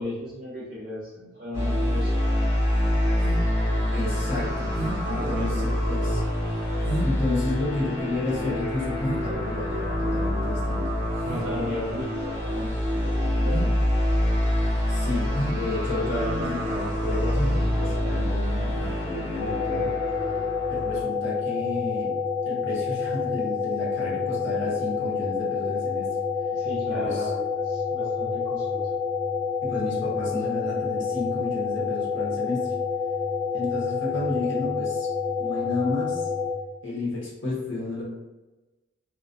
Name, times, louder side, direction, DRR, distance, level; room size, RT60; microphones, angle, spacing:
voice 1, 0.0-2.3 5.0-6.2 11.2-13.9 26.5-28.9, left 1 dB, 40° right, -10 dB, 0.6 m, -35 dB
sound 1, 1.5-21.0, equal, 15° right, 0.8 m, -26 dB
sound 2, 2.6-18.9, right 1 dB, 15° left, 1.0 m, -36 dB
voice 2, 3.9-4.8 5.0-6.2 7.0-10.9 14.9-19.9 20.7-22.2 22.4-26.2 26.9-27.3 29.6-32.7 33.5-35.1 35.4-36.3 36.8-38.0, left 2 dB, 60° left, -5 dB, 0.9 m, -31 dB
sound 3, 19.4-36.5, left 5 dB, 30° left, 0.4 m, -28 dB
2.4 x 2.1 x 2.5 m, 1.1 s
head